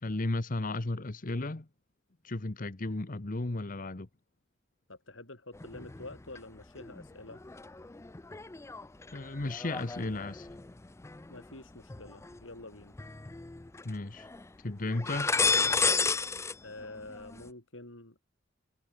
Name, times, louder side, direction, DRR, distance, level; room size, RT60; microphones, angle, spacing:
voice 1, 0.0-1.7 2.2-4.1 9.1-10.5 13.8-14.3 14.6-15.4, left 2 dB, 45° left, 1.1 m, -34 dB
voice 2, 4.9-7.4 11.3-13.0 16.6-18.2, left 2 dB, 80° left, 6.6 m, -47 dB
sound 1, 5.5-6.4 6.8-12.4 12.9-13.9 14.2-14.4 14.9-16.5 16.8-17.5, left 4 dB, 15° left, 0.4 m, -33 dB
head